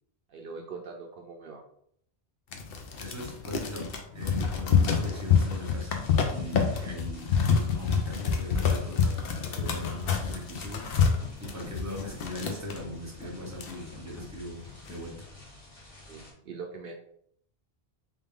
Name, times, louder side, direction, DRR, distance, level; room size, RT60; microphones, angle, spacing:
voice 1, 0.3-1.6 16.1-16.9, right 4 dB, 65° right, 1 dB, 0.7 m, -42 dB
sound 1, 2.5-12.8 13.2-13.3 13.5-14.2 14.6-15.0, left 6 dB, 70° left, 0.8 m, -27 dB
voice 2, 3.0-5.9 6.3-15.3, left 1 dB, 15° right, -1 dB, 0.8 m, -40 dB
sound 2, 4.9-16.3, left 3 dB, 35° left, 1.2 m, -48 dB
3.5 x 2.6 x 3.6 m, 0.68 s
omnidirectional pair, 1.1 m